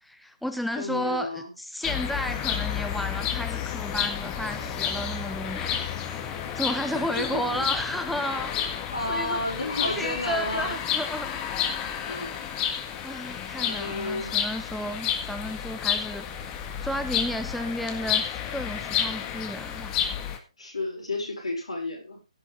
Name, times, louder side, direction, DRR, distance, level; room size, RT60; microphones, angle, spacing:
voice 1, 0.0-8.5 9.1-11.4 13.0-16.2 16.8-20.0, equal, ahead, 7 dB, 0.7 m, -33 dB
voice 2, 0.8-1.5 6.9-7.7 8.9-10.8 12.0-12.4 13.3-14.3 20.6-22.2, left 2 dB, 70° left, 1 dB, 6.4 m, -32 dB
sound 1, 1.8-20.4, left 9 dB, 20° left, 1.8 m, -31 dB
16.5 x 7.2 x 3.7 m, 0.29 s
figure-of-eight pair, 135°, 3 cm